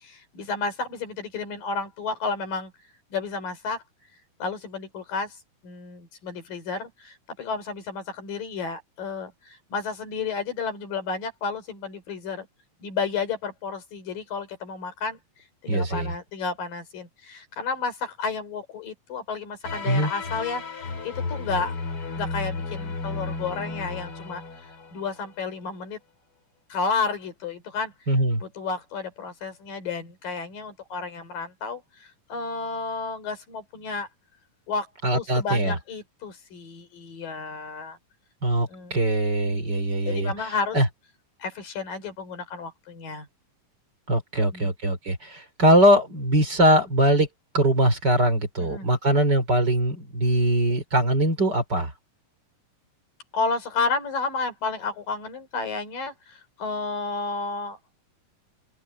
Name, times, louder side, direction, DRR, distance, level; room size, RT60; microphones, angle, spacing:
voice 1, 0.0-2.7 3.1-3.8 4.4-5.3 5.6-9.3 9.7-12.5 12.8-15.2 15.6-20.6 21.0-21.7 22.1-24.4 24.9-26.0 26.7-27.9 28.4-31.8 32.3-34.1 34.7-34.9 35.1-38.0 38.7-39.0 40.1-40.8 41.4-43.3 44.5-44.7 48.6-48.9 53.3-56.1 56.6-57.8, left 4 dB, 85° left, 6.1 m, -31 dB
voice 2, 15.7-16.1 19.8-20.1 28.1-28.4 35.0-35.8 38.4-40.9 44.1-47.3 47.5-51.9, right 1 dB, 30° right, 4.4 m, -22 dB
sound 1, 19.6-25.4, left 3 dB, 40° left, 4.2 m, -33 dB
open air
omnidirectional pair, 3.9 m